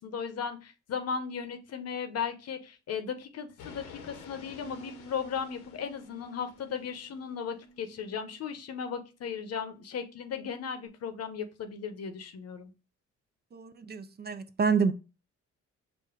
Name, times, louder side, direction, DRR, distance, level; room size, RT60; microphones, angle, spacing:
voice 1, 0.0-12.7, left 6 dB, 55° left, 0.8 m, -36 dB
sound 1, 3.6-7.6, left 6 dB, 85° left, 0.9 m, -51 dB
sound 2, 4.6-10.9, right 2 dB, 10° left, 0.8 m, -54 dB
voice 2, 13.5-14.9, right 5 dB, 35° right, 0.4 m, -28 dB
4.9 x 2.2 x 4.7 m
cardioid pair, 90°, 30 cm